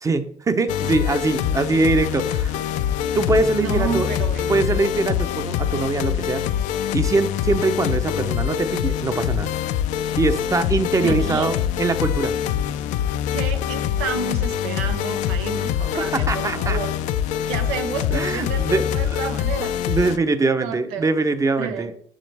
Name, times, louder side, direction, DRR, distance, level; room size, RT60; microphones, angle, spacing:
voice 1, 0.0-2.6 3.1-4.1 4.5-6.4 6.9-9.5 10.2-12.3 16.1-16.8 18.1-19.2 19.9-21.9, right 3 dB, 25° right, 10 dB, 0.8 m, -22 dB
sound 1, 0.7-20.2, left 10 dB, 75° left, 0.5 m, -24 dB
voice 2, 3.6-4.6 11.0-11.5 13.3-16.9 17.5-19.7 20.6-21.1 21.6-21.9, right 7 dB, 90° right, 7 dB, 1.0 m, -30 dB
7.4 x 6.3 x 3.5 m, 0.63 s
supercardioid pair, 85°, 12 cm